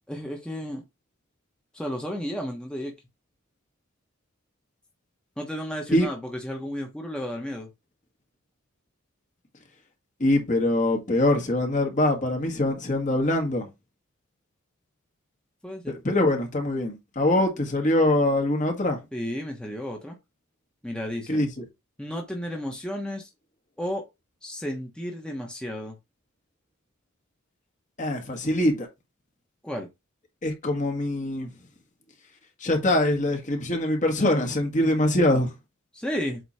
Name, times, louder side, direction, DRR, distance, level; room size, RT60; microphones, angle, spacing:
voice 1, 0.1-0.8 1.7-2.9 5.4-7.7 15.6-16.0 19.1-20.2 20.8-21.4 22.0-23.3 23.8-24.0 24.4-26.0 29.6-29.9 35.9-36.4, equal, 5° left, 1.1 m, -33 dB
voice 2, 10.2-13.7 15.9-19.0 21.3-21.5 28.0-28.9 30.4-31.5 32.6-35.5, left 1 dB, 40° left, 1.5 m, -23 dB
7.9 x 3.1 x 4.2 m
head